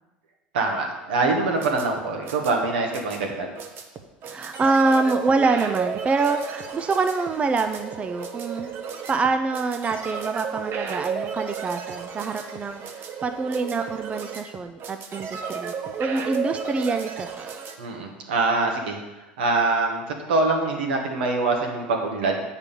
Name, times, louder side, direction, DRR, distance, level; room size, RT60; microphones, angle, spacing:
voice 1, 0.5-3.5 17.8-19.0 19.4-22.4, right 3 dB, 80° right, 1 dB, 1.4 m, -24 dB
sound 1, 1.3-17.8, right 6 dB, 50° right, 0.9 m, -33 dB
voice 2, 4.2-8.8 9.1-15.7 16.0-17.5, right 3 dB, 25° right, 7 dB, 0.5 m, -25 dB
8.2 x 4.9 x 5.3 m, 1.1 s
hypercardioid pair, 80°, 5 cm